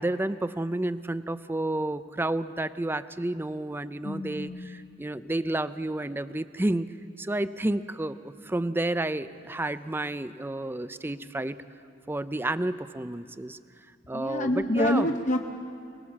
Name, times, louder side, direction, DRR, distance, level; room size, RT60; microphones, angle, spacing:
voice 1, 0.0-6.9 7.2-11.6 12.1-13.6 14.1-15.1, right 1 dB, 10° right, 13 dB, 0.4 m, -30 dB
voice 2, 4.0-4.8 14.1-15.4, left 1 dB, 40° left, 4 dB, 0.8 m, -27 dB
23.5 x 20.0 x 7.3 m, 2.4 s
head